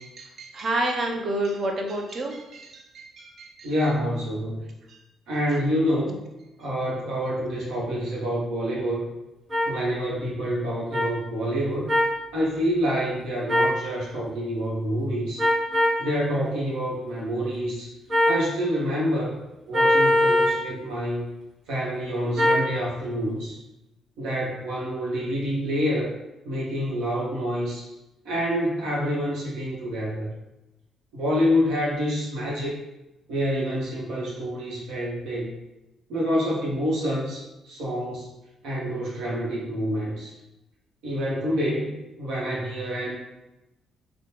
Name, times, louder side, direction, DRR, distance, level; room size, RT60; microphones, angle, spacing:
voice 1, 0.0-3.7 4.9-5.0, right 1 dB, 55° right, 2 dB, 0.5 m, -30 dB
voice 2, 3.6-4.6 5.3-6.2 6.6-9.0 9.7-11.9 12.3-15.4 16.0-17.9 18.3-19.3 19.7-21.3 21.7-23.6 24.2-26.1 26.5-27.9 28.2-30.3 31.1-32.8 33.3-35.5 36.1-38.3 38.6-40.3 41.0-43.2, equal, 90° right, -5 dB, 0.8 m, -27 dB
sound 1, 9.5-9.7 10.9-11.1 11.9-12.1 13.5-13.8 15.4-16.0 18.1-18.4 19.7-20.6 22.4-22.7, left 1 dB, 25° right, 1.3 m, -20 dB
3.1 x 2.1 x 2.9 m, 0.96 s
cardioid pair, 90°, 0 cm